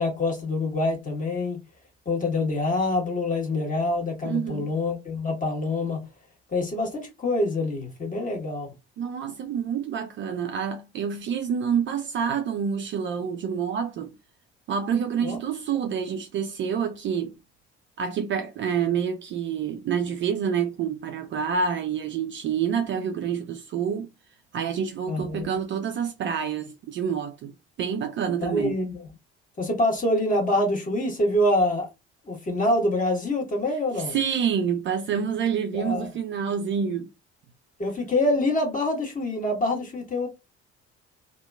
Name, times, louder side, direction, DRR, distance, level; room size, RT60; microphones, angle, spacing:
voice 1, 0.0-1.6 2.0-6.0 6.5-8.7 15.2-15.4 25.1-25.5 28.4-29.0 29.6-31.9 32.3-34.2 35.7-36.1 37.8-40.3, left 1 dB, 25° left, 1.3 m, -25 dB
voice 2, 4.2-4.8 9.0-14.1 14.7-17.4 18.0-24.1 24.5-27.5 27.8-28.8 33.9-37.1, right 7 dB, 35° right, 0.4 m, -27 dB
2.7 x 2.3 x 2.2 m
figure-of-eight pair, 50°, 34 cm